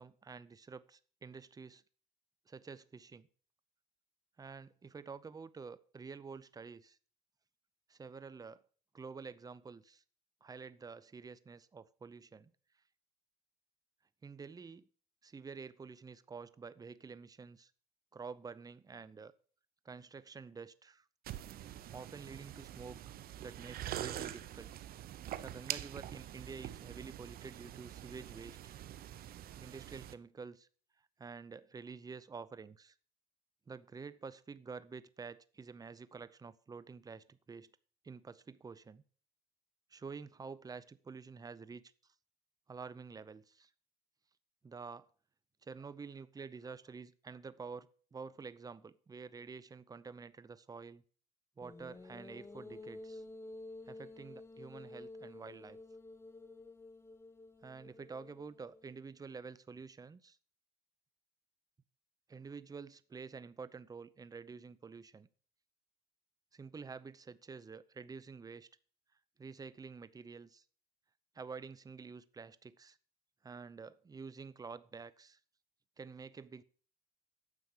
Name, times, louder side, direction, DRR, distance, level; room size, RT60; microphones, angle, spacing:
voice 1, 0.0-1.8 2.5-3.3 4.4-7.0 7.9-8.6 8.9-10.0 10.4-12.5 14.2-14.9 15.2-17.7 18.1-19.3 19.8-21.0 21.9-24.7 25.4-28.8 29.6-30.7 31.2-32.9 33.7-37.7 38.0-39.0 39.9-41.8 42.7-43.7 44.6-45.1 45.6-51.0 51.6-53.2 53.9-55.8 57.6-60.4 62.3-65.3 66.5-68.7 69.4-70.6 71.3-73.0 73.4-75.4 76.0-76.6, right 5 dB, 20° right, 0.7 m, -49 dB
sound 1, 21.2-30.1, right 12 dB, 60° right, 0.7 m, -45 dB
sound 2, 51.6-59.0, left 2 dB, 15° left, 0.8 m, -51 dB
9.8 x 7.0 x 6.6 m
cardioid pair, 110°, 17 cm